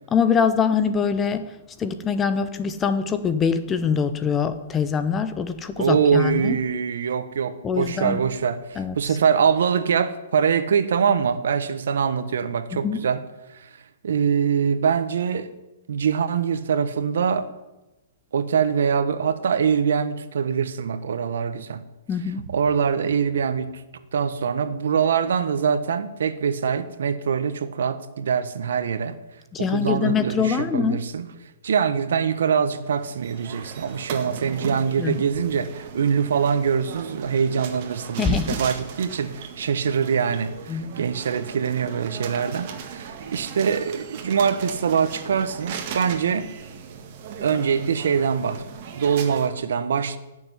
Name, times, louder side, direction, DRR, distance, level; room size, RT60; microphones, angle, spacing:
voice 1, 0.1-1.4 1.8-6.6 7.6-8.2 8.8-8.9 12.8-13.0 22.1-22.4 29.5-31.0 35.0-35.2 38.2-38.6 40.7-40.9, left 6 dB, 10° left, 0.7 m, -23 dB
voice 2, 5.8-13.2 14.0-15.5 15.9-17.5 18.3-21.8 22.5-23.7 24.1-29.2 29.6-31.3 31.6-46.5 47.4-48.6 48.9-50.2, right 7 dB, 70° right, 1.3 m, -23 dB
sound 1, 32.8-49.5, right 7 dB, 35° right, 1.9 m, -38 dB
17.0 x 7.2 x 9.8 m
hypercardioid pair, 170°, 0 cm